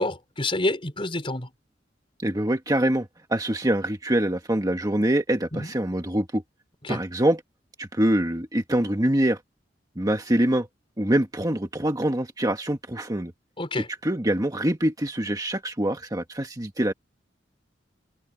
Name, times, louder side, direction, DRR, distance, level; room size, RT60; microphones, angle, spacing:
voice 1, 0.0-1.5 5.5-5.7 6.8-7.0 13.6-13.9, left 2 dB, 30° left, 4.9 m, -28 dB
voice 2, 2.2-6.4 6.9-7.4 7.8-9.4 10.0-10.7 11.0-13.3 14.0-16.9, right 1 dB, 20° right, 1.6 m, -24 dB
head